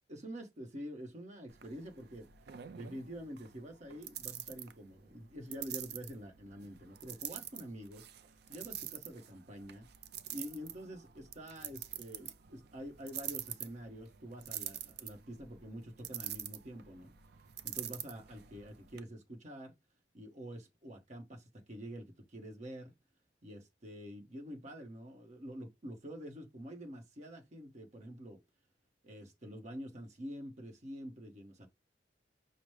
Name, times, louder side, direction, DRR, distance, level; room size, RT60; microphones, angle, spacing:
voice 1, 0.1-2.3 2.7-8.1 8.5-9.9 10.3-17.1 17.6-19.7 20.1-22.9 23.4-28.4 29.0-31.7, equal, 40° right, 1.0 m, -47 dB
sound 1, 1.5-19.0, right 11 dB, 60° right, 0.5 m, -46 dB
5.8 x 2.1 x 3.2 m
head